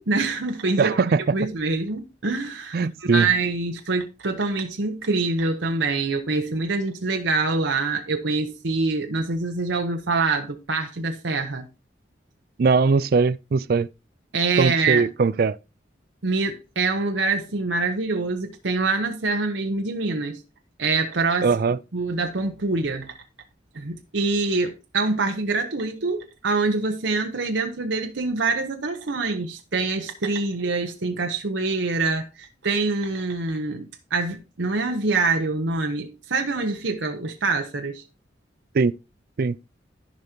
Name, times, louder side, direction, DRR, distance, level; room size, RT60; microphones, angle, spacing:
voice 1, 0.0-1.0 1.3-11.7 14.3-15.1 16.2-20.4 20.8-21.5 21.9-23.1 23.7-38.0, right 3 dB, 80° right, 0.9 m, -25 dB
voice 2, 0.8-1.2 2.7-3.3 12.6-13.9 14.6-15.6 21.4-21.8 38.7-38.9 39.4-39.6, right 4 dB, 50° right, 0.4 m, -20 dB
14.5 x 5.2 x 2.8 m
head